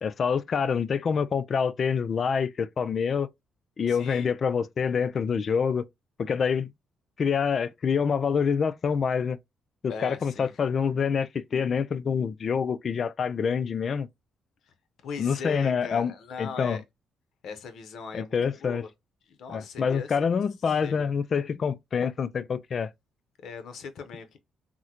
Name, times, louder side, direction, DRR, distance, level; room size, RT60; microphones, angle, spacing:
voice 1, 0.0-3.3 3.8-5.8 6.2-6.7 7.2-9.4 9.8-14.1 15.2-16.1 16.4-16.8 18.1-18.8 19.5-22.9, left 6 dB, 50° left, 0.3 m, -26 dB
voice 2, 3.9-4.3 9.9-10.6 15.0-16.8 17.4-18.4 18.6-18.9 19.3-20.2 20.8-21.1 23.4-24.4, left 5 dB, 70° left, 0.7 m, -39 dB
3.6 x 2.1 x 2.9 m
cardioid pair, 90°, 0 cm